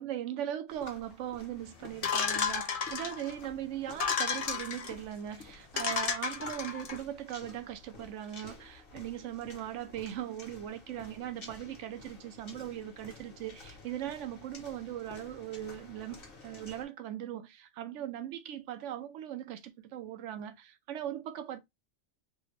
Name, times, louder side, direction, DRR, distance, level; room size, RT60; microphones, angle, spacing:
voice 1, 0.0-16.2 16.4-21.6, right 11 dB, 75° right, 0.9 m, -39 dB
sound 1, 0.7-16.8, left 3 dB, 45° left, 1.2 m, -52 dB
sound 2, 2.0-3.3 3.9-4.9 5.4-5.5 5.8-7.0, left 6 dB, 65° left, 0.3 m, -32 dB
3.3 x 2.2 x 3.1 m
omnidirectional pair, 1.3 m